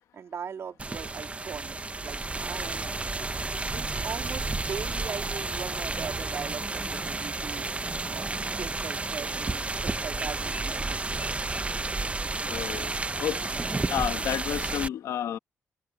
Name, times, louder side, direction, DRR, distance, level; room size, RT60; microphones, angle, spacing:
voice 1, 0.1-2.9 3.7-7.7 8.1-11.3 13.2-13.5, right 7 dB, 55° right, 3.4 m, -40 dB
sound 1, 0.8-14.9, right 3 dB, 25° right, 1.0 m, -31 dB
voice 2, 12.4-12.9 13.2-13.4 13.9-15.4, left 10 dB, 80° left, 1.5 m, -30 dB
cardioid pair, 75°, 5 cm